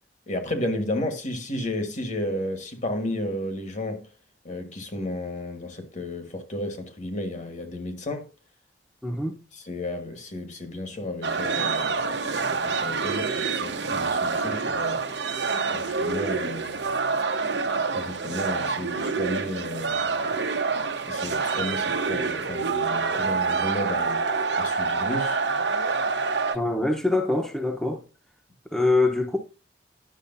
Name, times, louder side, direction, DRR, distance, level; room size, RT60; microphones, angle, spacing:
voice 1, 0.3-4.1 4.4-8.3 9.5-15.0 15.7-16.9 17.9-20.4 21.0-24.2 24.6-25.4, left 1 dB, 45° left, 1.4 m, -33 dB
voice 2, 9.0-9.4 26.5-28.0 28.7-29.4, left 2 dB, 5° left, 0.8 m, -24 dB
sound 1, 11.2-26.5, right 4 dB, 75° right, 1.0 m, -27 dB
10.0 x 6.4 x 2.6 m
head